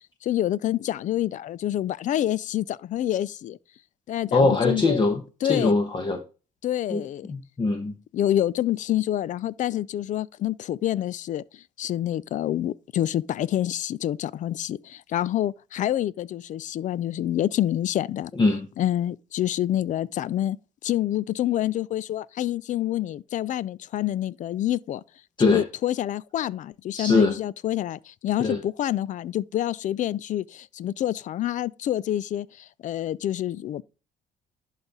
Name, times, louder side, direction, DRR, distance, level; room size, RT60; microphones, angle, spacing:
voice 1, 0.2-3.6 4.1-5.1 5.4-5.8 6.6-7.3 8.1-11.4 11.8-18.3 18.8-20.6 20.8-25.0 25.4-33.8, left 12 dB, 50° left, 0.4 m, -27 dB
voice 2, 4.3-6.2 6.9-7.9 18.3-18.7 25.4-25.6 26.9-27.3 28.4-28.6, left 3 dB, 30° left, 1.1 m, -22 dB
11.0 x 4.1 x 3.6 m
cardioid pair, 110°, 17 cm